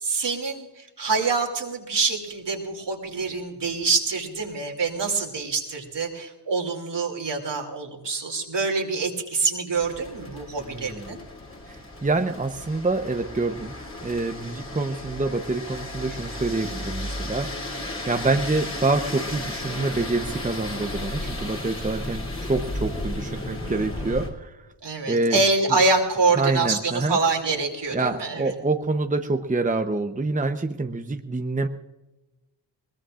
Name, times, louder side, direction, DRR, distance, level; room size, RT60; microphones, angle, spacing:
voice 1, 0.0-11.2 23.5-24.3 24.8-28.5, right 3 dB, 65° right, 2 dB, 2.8 m, -26 dB
sound 1, 9.7-24.3, left 1 dB, 35° left, 3.5 m, -34 dB
voice 2, 10.7-11.1 11.7-13.7 14.0-17.5 18.1-24.5 25.1-25.4 26.4-27.2 27.9-31.7, right 3 dB, 15° right, 6 dB, 0.9 m, -26 dB
21.5 x 20.0 x 2.5 m, 1.0 s
cardioid pair, 65°, 45 cm